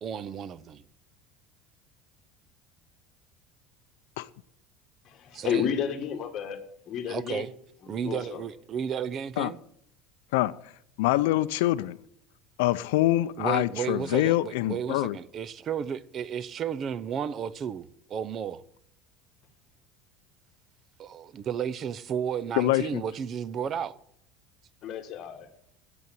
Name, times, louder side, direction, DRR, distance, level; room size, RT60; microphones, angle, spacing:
voice 1, 0.0-0.8 5.3-5.6 7.1-7.5 7.9-9.6 13.4-18.6 21.0-24.0, right 8 dB, 30° right, 0.5 m, -33 dB
voice 2, 5.0-6.6 6.8-7.5 7.8-8.4 24.8-25.5, left 8 dB, 40° left, 1.6 m, -32 dB
voice 3, 11.0-12.0 12.6-15.2 22.6-23.0, left 16 dB, 85° left, 0.4 m, -25 dB
8.4 x 7.9 x 9.0 m
cardioid pair, 155°, 0 cm